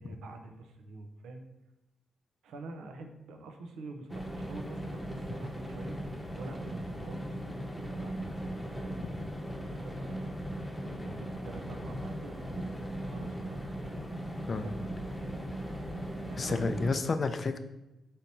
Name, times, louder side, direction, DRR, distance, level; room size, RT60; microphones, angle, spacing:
voice 1, 0.0-1.4 2.4-6.0 6.3-10.3 11.0-12.8 13.0-13.9 14.5-15.4 16.2-17.0, right 3 dB, 85° right, 5 dB, 0.5 m, -46 dB
sound 1, 4.1-16.9, equal, 5° left, 0.8 m, -38 dB
voice 2, 16.4-17.6, left 4 dB, 45° left, 10 dB, 0.3 m, -30 dB
3.3 x 2.8 x 4.1 m, 0.97 s
cardioid pair, 65°, 0 cm